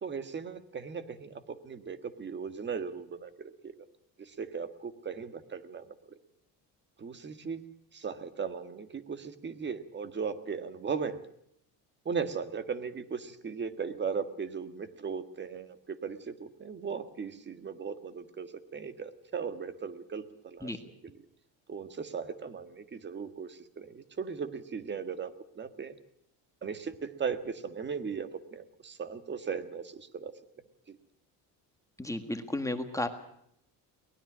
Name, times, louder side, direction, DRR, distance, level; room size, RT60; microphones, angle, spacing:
voice 1, 0.0-3.7 4.2-5.9 7.0-7.6 7.9-11.2 12.1-21.2 21.7-26.0 26.6-30.3 30.9-31.0, right 6 dB, 30° right, 11 dB, 1.7 m, -37 dB
voice 2, 32.0-33.1, left 1 dB, 10° left, 6 dB, 1.7 m, -33 dB
23.5 x 19.5 x 6.2 m, 0.72 s
cardioid pair, 135°, 38 cm